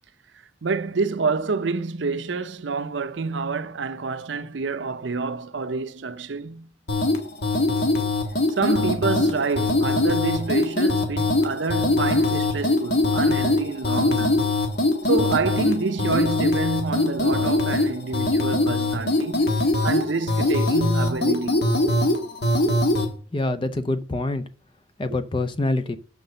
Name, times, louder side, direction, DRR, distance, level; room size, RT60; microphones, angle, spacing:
voice 1, 0.6-6.7 8.5-14.4 15.1-21.7, right 4 dB, 75° right, 0.6 m, -27 dB
sound 1, 6.9-23.1, left 2 dB, 60° left, 1.5 m, -22 dB
voice 2, 23.3-24.4 25.0-26.0, left 2 dB, 25° left, 0.5 m, -25 dB
6.5 x 5.9 x 6.6 m
head